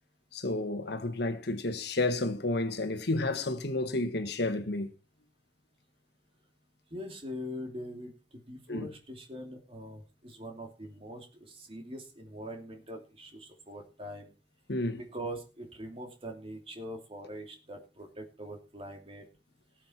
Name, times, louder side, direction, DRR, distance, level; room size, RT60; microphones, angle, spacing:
voice 1, 0.3-4.9 8.7-8.9 14.7-15.0, left 2 dB, 65° left, 1.5 m, -31 dB
voice 2, 6.9-14.3 15.0-19.3, equal, 30° right, 2.9 m, -43 dB
18.5 x 7.6 x 4.5 m
head